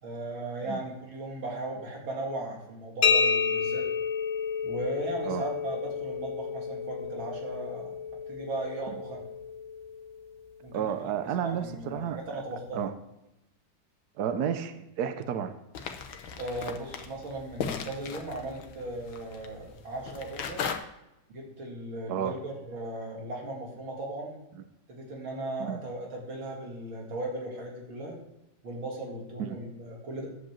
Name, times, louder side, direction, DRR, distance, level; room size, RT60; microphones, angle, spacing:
voice 1, 0.0-3.8 4.6-7.9 8.3-9.2 10.6-10.9 11.4-12.8 16.4-20.7 21.3-24.4 24.9-28.2 28.6-30.3, right 1 dB, 80° right, -1 dB, 3.1 m, -37 dB
sound 1, 3.0-10.6, left 6 dB, 55° left, 0.9 m, -30 dB
voice 2, 10.7-12.2 12.7-12.9 14.2-15.5 22.1-22.3 25.6-25.8 29.4-29.6, right 8 dB, 65° right, 9 dB, 1.1 m, -31 dB
sound 2, 15.7-20.8, left 7 dB, 80° left, 1.7 m, -38 dB
10.0 x 5.1 x 7.4 m, 0.91 s
omnidirectional pair, 2.1 m